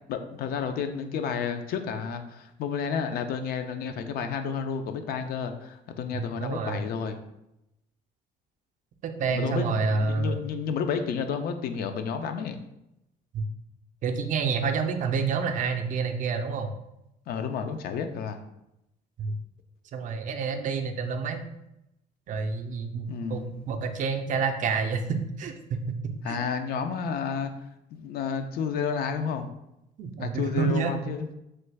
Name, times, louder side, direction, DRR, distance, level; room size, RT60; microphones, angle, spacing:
voice 1, 0.0-7.2 9.3-12.6 17.3-18.4 23.1-23.7 26.2-27.5 27.9-29.5 30.2-31.3, left 6 dB, 65° left, 7 dB, 0.4 m, -31 dB
voice 2, 6.1-6.8 9.0-10.4 13.3-13.4 14.0-16.7 19.2-19.3 19.9-21.4 22.3-26.0 26.3-26.4 30.0-30.9, right 5 dB, 50° right, 5 dB, 0.4 m, -28 dB
3.2 x 2.3 x 3.3 m, 0.85 s
cardioid pair, 110°, 17 cm